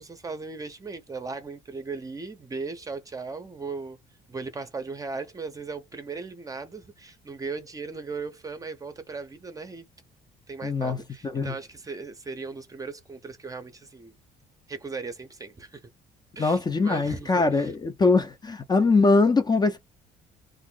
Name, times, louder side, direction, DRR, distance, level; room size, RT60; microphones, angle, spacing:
voice 1, 0.0-4.0 4.3-9.9 10.5-14.1 14.7-15.9 16.4-17.7, right 4 dB, 20° right, 0.7 m, -37 dB
voice 2, 10.6-11.0 11.2-11.5 16.4-19.8, left 3 dB, 25° left, 0.6 m, -22 dB
2.6 x 2.0 x 3.7 m
cardioid pair, 110°, 17 cm